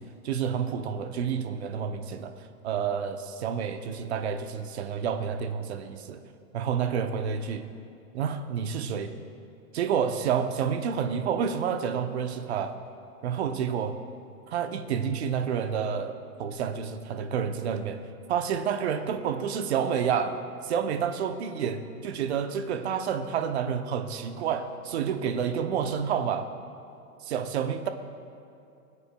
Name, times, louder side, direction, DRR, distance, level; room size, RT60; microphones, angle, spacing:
voice 1, 0.0-2.3 2.6-6.2 6.5-7.7 8.1-9.1 9.7-12.8 13.2-14.0 14.5-18.0 18.3-20.4 20.6-26.5 27.2-27.9, right 7 dB, 45° right, 7 dB, 0.7 m, -29 dB
20.5 x 8.4 x 2.2 m, 2.7 s
hypercardioid pair, 165°, 45 cm